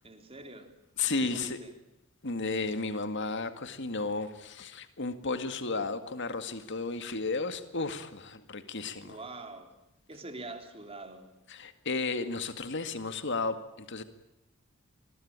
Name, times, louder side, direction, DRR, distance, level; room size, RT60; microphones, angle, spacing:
voice 1, 0.0-0.7 1.1-1.7 9.0-9.7 10.1-11.3, right 2 dB, 30° right, 6 dB, 3.5 m, -44 dB
voice 2, 1.0-1.6 2.2-9.2 11.5-14.0, left 3 dB, 60° left, 10 dB, 2.1 m, -33 dB
27.0 x 22.0 x 8.8 m, 0.87 s
head